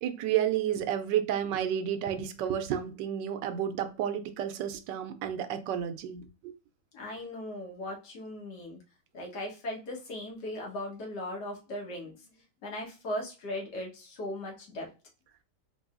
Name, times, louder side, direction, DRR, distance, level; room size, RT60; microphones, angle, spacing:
voice 1, 0.0-6.5, right 10 dB, 80° right, 1.2 m, -31 dB
voice 2, 6.9-8.8 9.1-14.9, left 1 dB, 70° left, 1.8 m, -38 dB
4.5 x 2.6 x 2.4 m
omnidirectional pair, 1.9 m